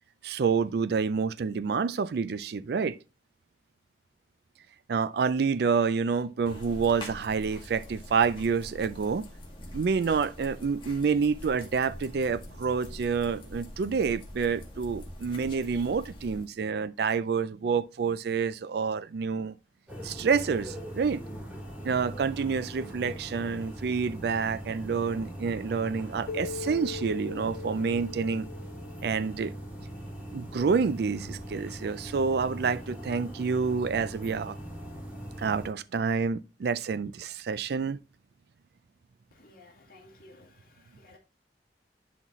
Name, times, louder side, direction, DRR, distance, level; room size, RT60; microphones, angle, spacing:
voice 1, 0.2-3.0 4.9-9.2 9.7-19.5 20.0-21.2 21.8-28.5 29.0-29.5 30.3-34.6 35.4-38.0, right 5 dB, 65° right, 0.4 m, -28 dB
sound 1, 6.5-16.5, left 1 dB, 30° left, 1.8 m, -44 dB
sound 2, 19.9-35.7, right 1 dB, 5° right, 2.8 m, -41 dB
Keyboard (musical), 26.3-29.5, left 5 dB, 75° left, 0.3 m, -40 dB
voice 2, 39.3-41.2, left 2 dB, 55° left, 2.4 m, -55 dB
11.0 x 4.2 x 3.0 m
head